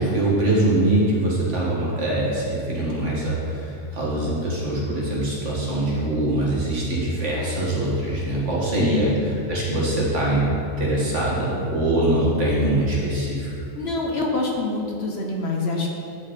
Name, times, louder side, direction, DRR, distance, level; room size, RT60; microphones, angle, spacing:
voice 1, 0.0-9.2 9.5-13.7, right 1 dB, 60° right, -5 dB, 2.0 m, -23 dB
voice 2, 8.8-9.2 13.8-15.9, left 3 dB, 55° left, 0 dB, 1.1 m, -26 dB
11.0 x 5.3 x 4.1 m, 2.6 s
omnidirectional pair, 1.4 m